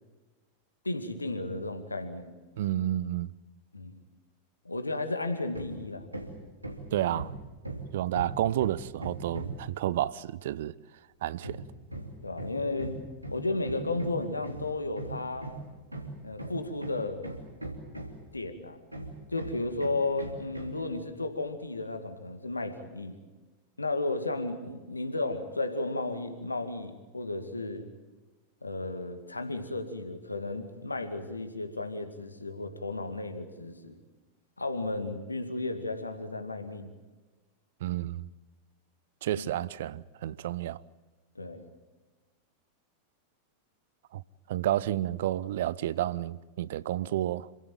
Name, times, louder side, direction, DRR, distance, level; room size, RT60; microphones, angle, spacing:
voice 1, 0.8-2.4 3.7-4.0 4.6-6.1 6.9-7.1 12.2-13.0 13.3-15.5 16.2-17.2 18.3-18.8 19.3-23.2 23.8-27.9 28.6-34.0 34.6-36.9 39.3-39.5 41.4-41.7, left 2 dB, 80° left, 2.2 m, -34 dB
voice 2, 2.6-3.3 6.9-7.3 7.9-10.7 11.2-11.6 37.8-38.3 39.2-40.8 44.1-44.2 44.5-47.5, right 13 dB, 55° right, 0.7 m, -30 dB
Hammer, 5.5-5.8 6.1-9.7 11.4-18.4 18.9-20.8, right 2 dB, 85° right, 3.0 m, -39 dB
27.5 x 15.5 x 9.1 m
figure-of-eight pair, 90°, 0 cm